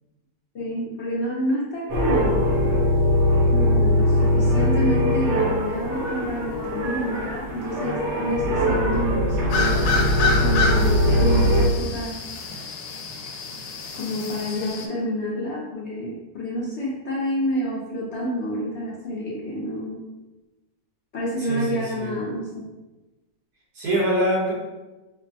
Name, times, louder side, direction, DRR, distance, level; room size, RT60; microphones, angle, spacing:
voice 1, 0.5-2.5 3.5-12.1 13.9-20.0 21.1-22.5, equal, 60° left, -5 dB, 0.8 m, -28 dB
sound 1, 1.9-11.7, left 1 dB, 55° right, 1.0 m, -21 dB
sound 2, 9.5-14.9, left 3 dB, 80° left, 1.1 m, -28 dB
voice 2, 21.4-22.2 23.7-24.5, right 1 dB, 75° right, -5 dB, 1.7 m, -24 dB
5.2 x 2.0 x 2.7 m, 1.1 s
omnidirectional pair, 1.7 m